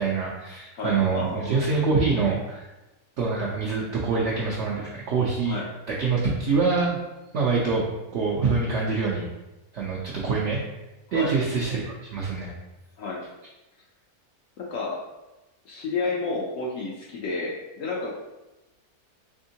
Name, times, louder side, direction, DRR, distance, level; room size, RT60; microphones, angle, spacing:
voice 1, 0.0-2.7 3.2-5.6 5.9-7.0 7.3-7.9 8.1-9.3 9.7-10.6 11.1-12.5, right 4 dB, 65° right, -4 dB, 0.7 m, -25 dB
voice 2, 0.7-1.6 5.4-5.7 11.1-11.4 13.0-13.2 14.6-15.0 15.7-18.2, left 3 dB, 65° left, -3 dB, 0.9 m, -31 dB
3.5 x 3.4 x 2.7 m, 1.0 s
omnidirectional pair, 1.6 m